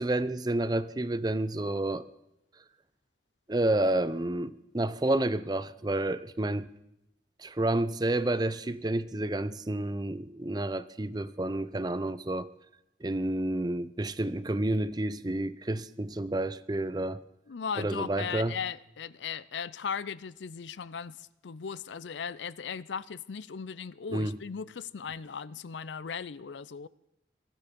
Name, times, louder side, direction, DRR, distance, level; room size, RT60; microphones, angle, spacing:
voice 1, 0.0-2.0 3.5-6.7 7.4-12.5 13.0-17.2 17.8-18.6 24.1-24.4, right 1 dB, 20° right, 0.5 m, -30 dB
voice 2, 17.5-26.9, left 6 dB, 90° left, 0.5 m, -37 dB
22.5 x 12.5 x 5.3 m
head